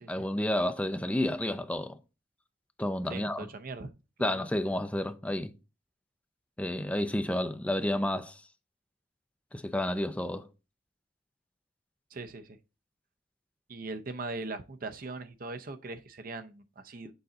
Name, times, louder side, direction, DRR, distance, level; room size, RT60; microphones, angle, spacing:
voice 1, 0.1-2.0 2.8-3.5 4.2-5.5 6.6-8.4 9.5-10.5, left 1 dB, 5° left, 0.4 m, -30 dB
voice 2, 3.1-3.9 4.2-4.4 12.1-12.6 13.7-17.1, right 3 dB, 50° right, 0.7 m, -40 dB
6.9 x 3.9 x 3.9 m
head